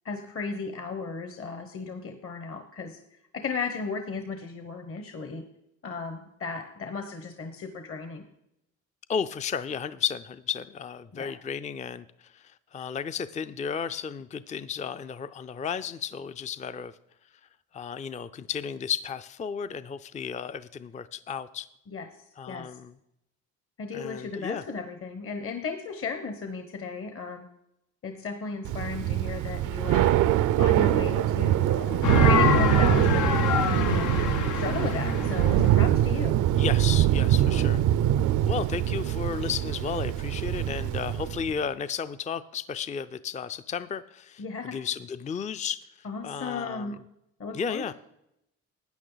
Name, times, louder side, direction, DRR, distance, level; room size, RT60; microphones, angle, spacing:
voice 1, 0.0-5.4 5.8-8.3 11.1-11.4 21.9-22.1 22.5-22.8 23.8-27.5 28.0-30.2 30.6-34.2 34.5-36.4 44.4-44.8 46.0-46.9 47.4-47.9, left 4 dB, 45° left, 7 dB, 1.1 m, -35 dB
voice 2, 9.1-16.9 17.7-21.7 22.4-22.9 23.9-24.6 36.6-37.8 38.4-44.4 44.7-45.9 46.2-47.0 47.5-47.9, left 7 dB, 25° left, 13 dB, 0.4 m, -33 dB
Thunder / Rain, 28.6-41.5, right 12 dB, 80° right, 0.6 m, -24 dB
sound 1, 32.0-36.9, left 8 dB, 85° left, 0.9 m, -26 dB
13.0 x 9.0 x 4.0 m, 0.82 s
cardioid pair, 90°, 30 cm